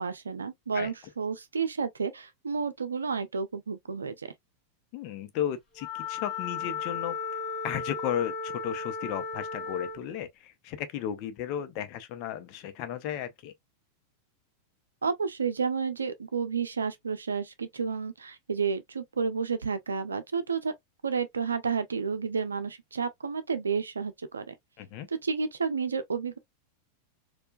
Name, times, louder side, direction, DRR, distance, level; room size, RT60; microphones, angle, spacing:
voice 1, 0.0-4.3 15.0-20.7 21.0-24.5 25.2-26.4, right 5 dB, 75° right, 0.6 m, -31 dB
voice 2, 4.9-7.2 7.6-13.5 24.8-25.1, left 10 dB, 45° left, 0.7 m, -34 dB
Wind instrument woodwind instrument, 5.8-10.1, left 5 dB, 25° left, 1.4 m, -35 dB
4.4 x 2.3 x 2.3 m
figure-of-eight pair, 90°, 0 cm